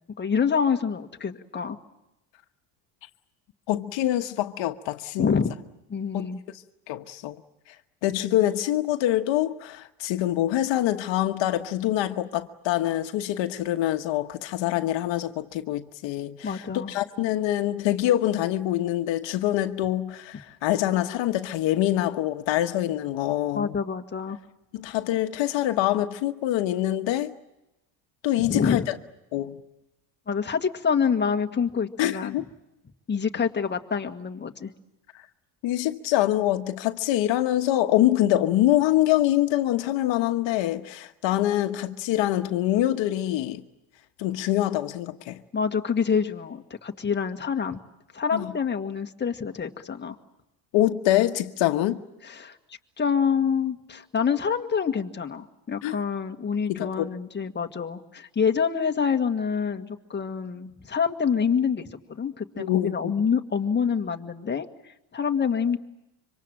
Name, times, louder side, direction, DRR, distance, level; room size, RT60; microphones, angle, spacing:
voice 1, 0.2-1.8 5.2-5.5 5.9-6.4 16.4-16.9 23.5-24.4 28.4-28.9 30.3-32.4 33.1-34.7 45.5-47.8 48.1-50.2 52.2-52.6 53.0-65.8, left 6 dB, 25° left, 1.7 m, -26 dB
voice 2, 3.7-5.4 6.1-6.3 6.9-7.4 8.0-16.6 16.9-23.7 24.7-27.3 28.2-29.0 29.3-29.6 32.0-32.4 35.6-43.6 44.2-45.4 48.3-48.5 50.7-52.0 55.8-56.0 56.7-57.1 62.6-63.1, left 13 dB, 70° left, 1.3 m, -25 dB
26.0 x 25.0 x 7.6 m
cardioid pair, 125°, 46 cm